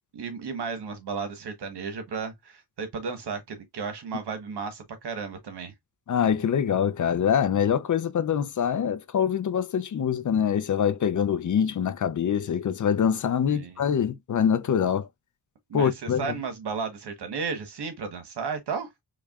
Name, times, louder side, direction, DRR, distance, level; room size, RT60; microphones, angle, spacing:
voice 1, 0.1-5.7 13.5-13.7 15.7-18.9, right 5 dB, 85° right, 1.2 m, -34 dB
voice 2, 6.1-15.1 15.7-16.3, left 8 dB, 50° left, 0.5 m, -24 dB
4.6 x 3.1 x 2.3 m
wide cardioid pair, 105°, 39 cm